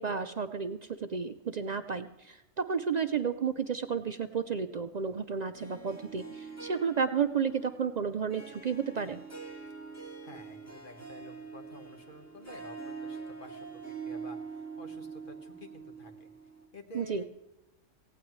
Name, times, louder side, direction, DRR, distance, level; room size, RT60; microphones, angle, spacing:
voice 1, 0.0-9.2 16.9-17.2, right 6 dB, 60° right, 9 dB, 0.4 m, -32 dB
Harp, 5.5-16.7, right 5 dB, 15° left, 1.3 m, -44 dB
voice 2, 10.2-16.3 16.7-17.2, left 2 dB, 40° left, 5 dB, 1.6 m, -50 dB
18.0 x 16.5 x 3.1 m, 0.95 s
omnidirectional pair, 1.3 m